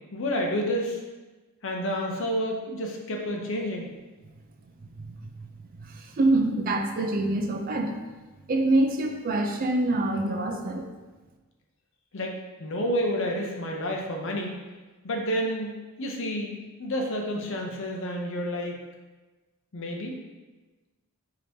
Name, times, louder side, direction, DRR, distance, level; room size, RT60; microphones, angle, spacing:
voice 1, 0.1-1.0 1.6-3.9 12.1-12.3 12.6-14.5 15.0-15.7 16.0-18.8 19.7-20.2, equal, 60° left, 1 dB, 0.6 m, -29 dB
voice 2, 5.8-8.0 8.5-10.9, right 2 dB, 40° right, 3 dB, 0.4 m, -25 dB
5.0 x 2.9 x 2.7 m, 1.2 s
head